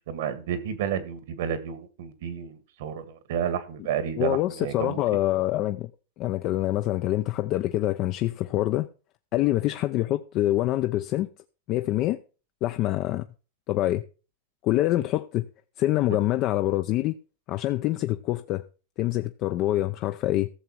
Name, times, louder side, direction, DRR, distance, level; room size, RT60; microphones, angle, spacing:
voice 1, 0.1-5.0 16.1-16.2, right 8 dB, 70° right, 1.9 m, -31 dB
voice 2, 4.2-5.9 6.2-8.9 9.3-11.3 11.7-12.2 12.6-13.2 13.7-14.0 14.6-15.5 15.8-17.2 17.5-18.6 19.0-20.5, left 15 dB, 45° left, 0.6 m, -25 dB
14.5 x 6.9 x 4.7 m
supercardioid pair, 130°, 0 cm